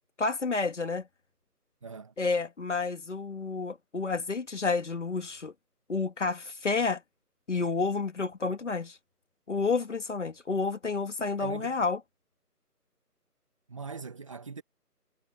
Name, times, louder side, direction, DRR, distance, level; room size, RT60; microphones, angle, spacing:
voice 1, 0.2-1.1 2.2-5.5 5.9-7.0 7.5-9.0 9.5-12.0, left 4 dB, 45° left, 2.4 m, -30 dB
voice 2, 1.8-2.1 11.4-11.8 13.7-14.6, right 5 dB, 20° right, 2.1 m, -41 dB
figure-of-eight pair, 170°, 48 cm